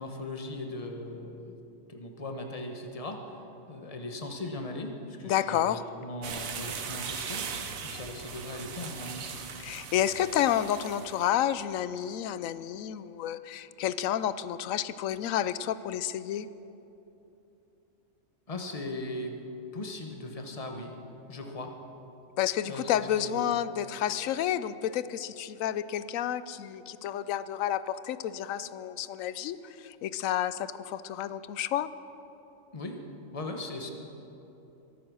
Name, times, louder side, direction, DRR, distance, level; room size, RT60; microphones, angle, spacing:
voice 1, 0.0-1.6 1.9-9.3 18.5-19.4 19.7-20.9 21.3-21.7 22.7-23.5 32.7-33.0 33.3-33.9, left 2 dB, 30° left, 4 dB, 1.3 m, -39 dB
voice 2, 5.2-5.8 9.6-16.5 22.4-31.9, left 11 dB, 80° left, 15 dB, 1.0 m, -30 dB
sound 1, 6.2-11.3, right 6 dB, 85° right, 1.4 m, -39 dB
23.5 x 8.6 x 6.3 m, 2.9 s
omnidirectional pair, 1.4 m